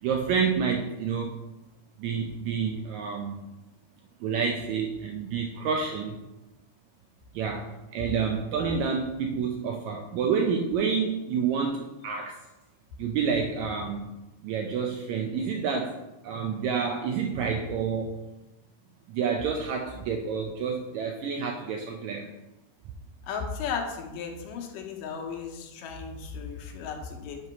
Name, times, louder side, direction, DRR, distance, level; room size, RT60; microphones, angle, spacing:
voice 1, 0.0-1.4 2.0-3.4 4.2-6.2 7.3-12.4 13.0-14.1 14.4-18.2 19.1-22.3, right 6 dB, 80° right, 2 dB, 1.6 m, -29 dB
voice 2, 23.3-27.4, left 6 dB, 85° left, 2 dB, 2.5 m, -35 dB
7.8 x 3.0 x 5.7 m, 1.0 s
omnidirectional pair, 3.8 m